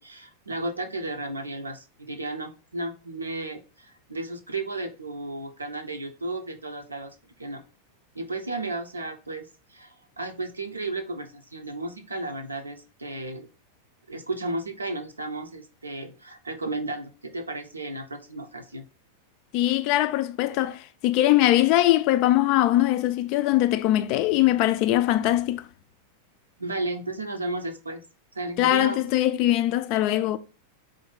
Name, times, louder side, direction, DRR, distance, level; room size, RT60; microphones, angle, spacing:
voice 1, 0.0-7.6 8.1-13.5 14.1-18.9 26.6-28.0 28.3-29.1, right 2 dB, 80° right, 0.6 m, -34 dB
voice 2, 19.5-25.6 28.6-30.4, left 14 dB, 45° left, 0.3 m, -22 dB
4.2 x 2.6 x 3.8 m
figure-of-eight pair, 90°, 0 cm